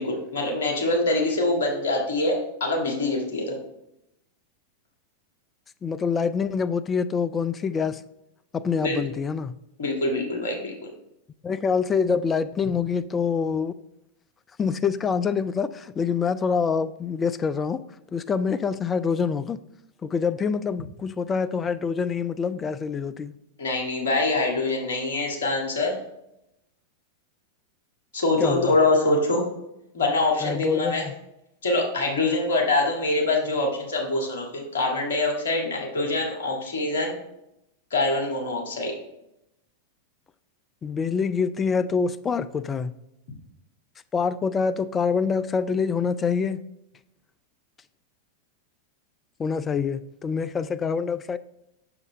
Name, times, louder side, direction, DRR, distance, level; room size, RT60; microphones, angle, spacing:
voice 1, 0.0-3.6 8.8-9.0 9.8-10.9 23.6-26.0 28.1-29.4 29.9-31.0 31.6-37.2 37.9-38.9, left 2 dB, 60° left, 1 dB, 1.7 m, -24 dB
voice 2, 5.8-8.0 8.5-9.6 11.4-13.8 14.6-17.8 18.1-19.6 20.0-23.3 28.4-28.8 30.4-31.1 40.8-42.9 44.1-46.6 49.4-51.4, left 5 dB, 20° left, 13 dB, 0.3 m, -25 dB
7.0 x 6.5 x 3.1 m, 0.85 s
figure-of-eight pair, 90°, 0 cm